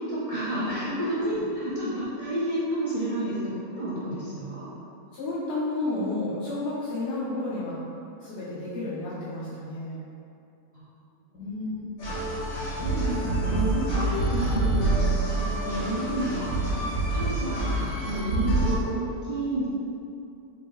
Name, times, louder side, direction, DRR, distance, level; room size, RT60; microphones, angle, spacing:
voice 1, 0.0-4.7 10.7-10.9 12.7-14.9 15.4-16.5 16.8-19.7, right 1 dB, 55° right, -10 dB, 0.4 m, -30 dB
voice 2, 0.5-1.0 1.7-1.9 5.1-7.8 8.2-10.0 11.3-12.2 16.7-16.8, left 2 dB, 55° left, -11 dB, 0.9 m, -32 dB
sound 1, 12.0-18.7, right 2 dB, 70° left, 1.3 m, -27 dB
4.4 x 2.6 x 3.1 m, 2.6 s
omnidirectional pair, 1.6 m